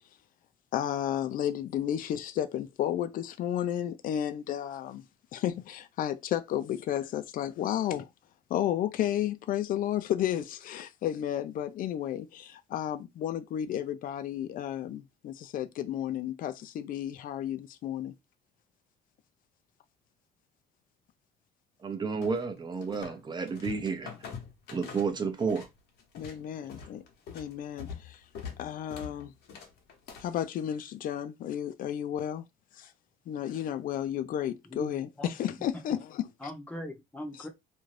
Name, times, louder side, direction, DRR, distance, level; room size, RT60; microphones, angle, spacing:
voice 1, 0.7-5.0 5.3-8.1 8.5-18.1 26.2-27.0 27.3-28.2 28.6-29.3 30.2-32.5 32.8-32.9 33.3-36.2, left 10 dB, 55° left, 0.4 m, -32 dB
voice 2, 21.8-24.1 24.7-25.7 26.6-26.7, right 5 dB, 25° right, 0.6 m, -31 dB
sound 1, 22.2-23.2 23.5-25.7 26.0-30.4, left 6 dB, 75° left, 0.9 m, -44 dB
voice 3, 34.6-35.6 36.4-37.5, left 1 dB, 10° left, 0.7 m, -41 dB
2.6 x 2.3 x 3.2 m
cardioid pair, 110°, 17 cm